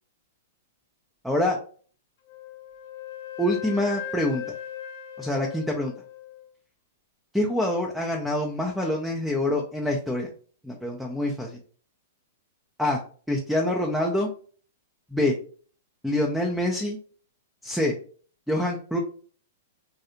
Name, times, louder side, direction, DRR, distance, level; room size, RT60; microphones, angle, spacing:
voice 1, 1.2-1.6 3.4-4.4 5.2-5.9 7.3-10.3 10.6-11.6 12.8-13.0 13.3-14.3 15.1-15.3 16.0-17.0 17.6-18.0 18.5-19.0, left 1 dB, ahead, 0 dB, 0.5 m, -25 dB
Wind instrument woodwind instrument, 2.3-6.5, left 9 dB, 50° left, 0.5 m, -38 dB
3.1 x 2.7 x 2.6 m, 0.43 s
figure-of-eight pair, 105°, 0 cm